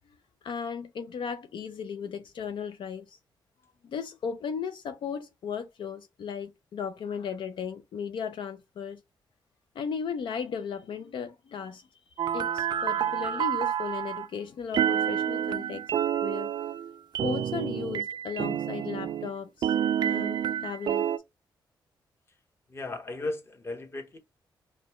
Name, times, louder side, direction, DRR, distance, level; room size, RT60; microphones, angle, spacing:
voice 1, 0.4-3.2 3.8-9.0 9.7-11.9 12.3-15.8 16.2-16.5 17.2-19.7 20.0-21.1, left 6 dB, 75° left, 0.5 m, -36 dB
sound 1, 12.2-14.3 14.7-19.3 19.6-21.2, right 9 dB, 65° right, 0.3 m, -28 dB
voice 2, 22.7-24.2, left 2 dB, 30° left, 1.0 m, -36 dB
5.1 x 2.3 x 2.9 m
wide cardioid pair, 145°, 8 cm